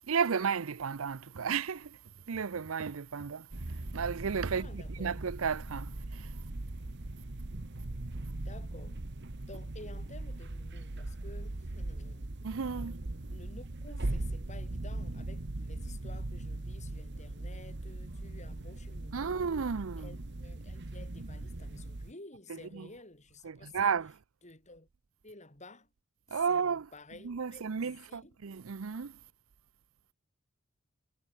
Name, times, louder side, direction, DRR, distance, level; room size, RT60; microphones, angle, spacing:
voice 1, 0.1-2.0 2.3-3.5 3.9-6.3 12.4-13.0 19.1-20.1 22.7-22.9 23.4-24.1 26.3-26.9 27.2-29.2, right 6 dB, 75° right, 0.6 m, -33 dB
sound 1, 3.5-22.1, right 2 dB, 55° right, 1.2 m, -40 dB
voice 2, 4.5-5.3 8.3-9.0 9.5-12.4 13.3-19.6 20.0-24.0 24.4-24.9 25.2-25.9 26.3-28.4, left 2 dB, 35° left, 8.0 m, -52 dB
head